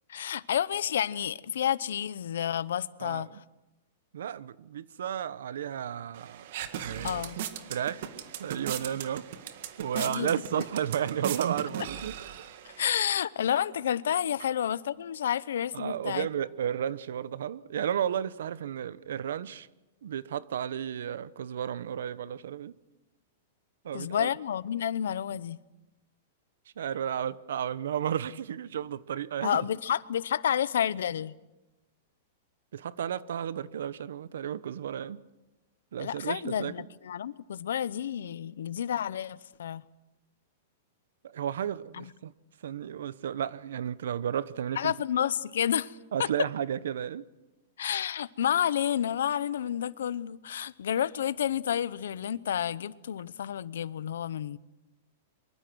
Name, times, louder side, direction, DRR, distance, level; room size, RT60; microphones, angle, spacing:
voice 1, 0.1-3.3 7.0-7.4 9.9-10.6 12.6-16.3 23.9-25.6 29.4-31.4 36.0-39.8 41.9-42.1 44.8-46.5 47.8-54.6, left 9 dB, 85° left, 0.8 m, -30 dB
voice 2, 4.1-6.4 6.7-7.3 7.7-8.1 8.4-9.3 9.8-12.1 15.7-19.7 20.0-22.7 23.8-24.3 26.8-29.6 32.7-35.2 35.9-36.7 41.2-42.3 42.6-44.9 46.1-47.2, right 9 dB, 80° right, 0.9 m, -33 dB
sound 1, 6.1-13.0, right 10 dB, 50° right, 1.8 m, -38 dB
24.5 x 23.5 x 6.3 m
supercardioid pair, 170°, 0 cm